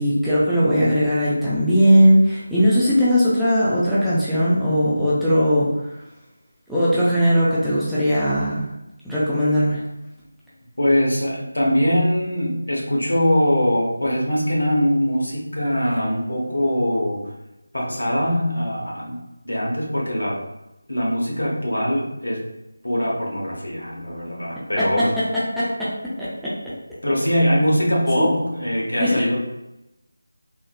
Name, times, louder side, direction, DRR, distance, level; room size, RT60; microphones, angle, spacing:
voice 1, 0.0-5.7 6.7-8.7 9.0-9.8 24.8-25.3 25.6-25.9 26.2-26.5 28.2-28.3 29.0-29.2, equal, ahead, -13 dB, 0.4 m, -19 dB
voice 2, 10.8-17.3 17.7-20.4 20.9-22.5 22.8-25.1 27.0-29.4, equal, 75° left, -3 dB, 1.0 m, -22 dB
3.6 x 2.0 x 2.4 m, 0.94 s
figure-of-eight pair, 165°, 0 cm